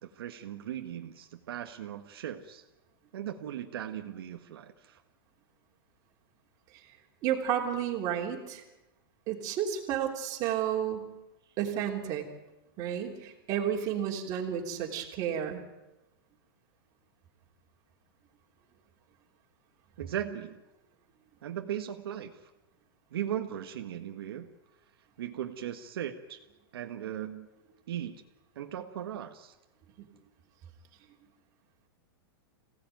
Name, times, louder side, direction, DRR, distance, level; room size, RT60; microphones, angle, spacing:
voice 1, 0.0-2.6 3.1-5.0 20.0-20.6 21.4-22.4 23.1-24.5 25.2-26.4 26.7-27.5 27.9-28.2 28.5-29.5, right 10 dB, 75° right, 5 dB, 1.6 m, -38 dB
voice 2, 7.2-8.6 9.3-11.1 11.6-12.3 12.8-15.6 30.0-30.1, right 9 dB, 30° right, 1 dB, 3.2 m, -31 dB
24.5 x 17.0 x 9.3 m, 1.0 s
supercardioid pair, 165°, 13 cm